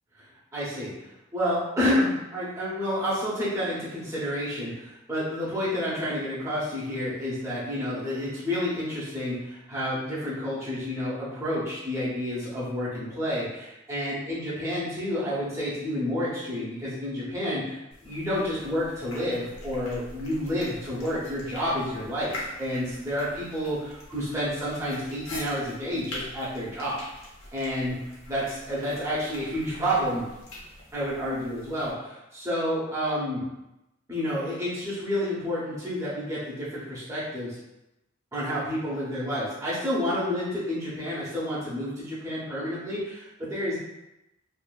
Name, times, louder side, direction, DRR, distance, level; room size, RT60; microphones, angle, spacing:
voice 1, 0.5-0.9 1.3-22.3 22.6-27.0 27.5-27.9 28.3-30.3 30.9-33.5 34.1-37.6 38.3-43.8, equal, 15° right, -9 dB, 0.7 m, -29 dB
sound 1, 17.9-31.9, left 1 dB, 85° left, 0.8 m, -44 dB
2.6 x 2.3 x 2.2 m, 0.92 s
head